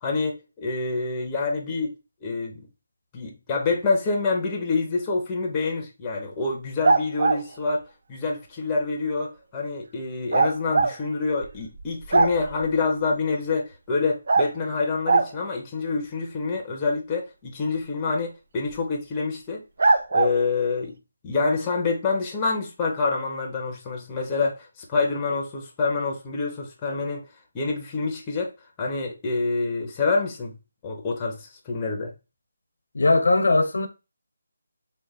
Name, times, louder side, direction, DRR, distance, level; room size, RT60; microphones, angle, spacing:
voice 1, 0.0-1.9 2.2-2.6 3.1-7.8 8.1-19.6 20.1-21.0 21.2-27.3 27.5-28.5 28.8-30.6 30.8-32.1, left 4 dB, 15° left, 0.5 m, -27 dB
sound 1, 6.8-7.4 10.3-10.9 11.4-11.5 11.8-12.6 14.3-14.5 15.1-15.3 18.7-18.8 19.8-20.3, right 3 dB, 55° right, 0.4 m, -20 dB
voice 2, 32.9-33.9, left 2 dB, 75° left, 0.6 m, -19 dB
3.2 x 2.2 x 3.4 m
figure-of-eight pair, 170°, 0 cm